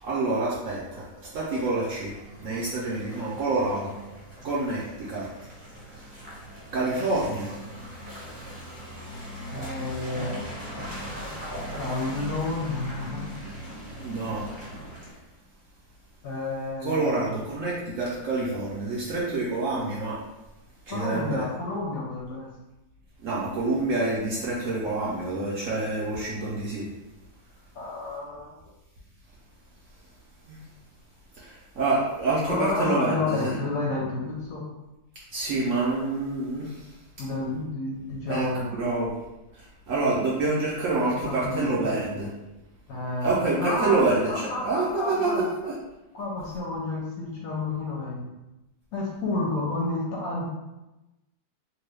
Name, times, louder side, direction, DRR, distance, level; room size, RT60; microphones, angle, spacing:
voice 1, 0.0-2.1 2.4-3.9 4.4-5.3 5.9-6.0 6.7-7.5 14.0-14.4 16.8-20.2 20.9-21.4 23.2-26.9 30.5-30.6 31.4-33.6 35.3-36.8 38.3-39.1 39.9-42.3 43.2-44.3 44.6-45.7, right 3 dB, 65° right, -6 dB, 0.8 m, -27 dB
Car passing by / Engine, 1.9-15.1, equal, 15° right, 1.3 m, -40 dB
voice 2, 9.5-10.4 11.8-13.2 16.2-17.3 20.9-22.5 27.7-28.6 32.5-34.7 37.2-38.8 41.1-42.0 42.9-45.5 46.1-48.3 48.9-50.5, left 2 dB, 70° left, -3 dB, 0.8 m, -30 dB
2.9 x 2.2 x 3.2 m, 1.0 s
omnidirectional pair, 1.8 m